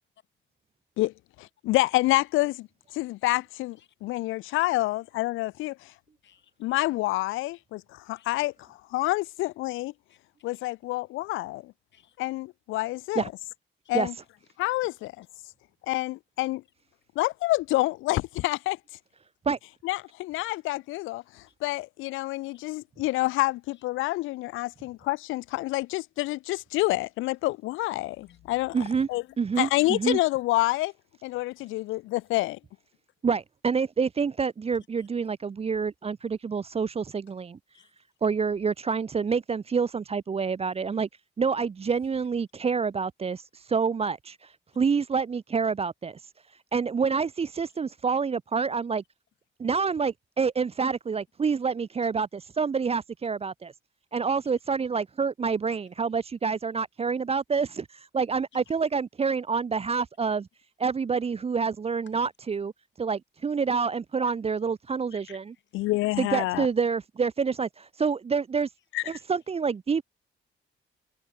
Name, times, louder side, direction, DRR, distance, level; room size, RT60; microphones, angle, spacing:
voice 1, 1.0-5.9 6.6-9.9 10.4-11.7 12.2-13.3 13.9-14.1 14.6-15.2 15.9-16.6 17.2-18.8 19.8-29.2 29.6-30.9 31.2-32.6 65.7-66.7 68.9-69.0, left 19 dB, 85° left, 0.4 m, -28 dB
voice 2, 6.2-6.5 8.1-8.3 10.1-10.7 11.9-12.2 13.8-14.1 14.8-14.9 21.5-21.6 22.5-22.7 23.7-23.8 28.1-28.6 29.7-29.8 30.6-30.7 31.6-31.7 35.0-35.1 37.7-37.9 47.7-47.8 58.5-58.7 65.1-65.9 69.1-69.3, left 10 dB, 65° left, 4.9 m, -59 dB
voice 3, 28.7-29.1 29.4-30.2 33.2-37.6 38.2-41.1 41.4-49.0 49.6-53.7 54.1-60.5 60.8-62.7 63.0-65.4 66.2-68.7 69.1-70.0, right 5 dB, 30° right, 0.7 m, -27 dB
cardioid pair, 90°, 20 cm